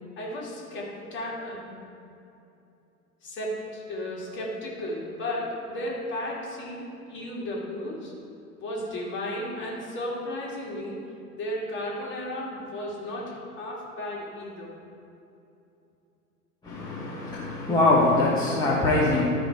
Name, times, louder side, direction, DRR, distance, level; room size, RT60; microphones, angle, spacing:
voice 1, 0.2-1.7 3.2-8.1 8.6-11.0 11.3-14.7, left 1 dB, 25° left, -4 dB, 2.3 m, -34 dB
voice 2, 16.6-19.3, left 2 dB, 10° left, -8 dB, 1.2 m, -23 dB
13.5 x 5.1 x 4.7 m, 2.7 s
figure-of-eight pair, 105°, 47 cm